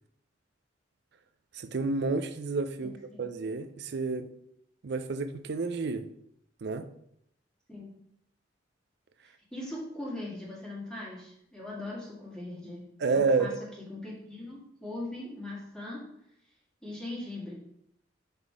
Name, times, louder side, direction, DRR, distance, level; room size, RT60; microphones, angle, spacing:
voice 1, 1.5-2.9 3.2-4.3 4.8-6.0 6.6-6.8 13.0-13.5, right 4 dB, 60° right, 10 dB, 0.5 m, -29 dB
voice 2, 2.8-3.3 7.7-8.0 9.2-13.5 13.8-16.1 16.4-16.5 16.8-17.5, left 1 dB, 5° left, -6 dB, 1.9 m, -40 dB
5.4 x 4.1 x 4.6 m, 0.75 s
head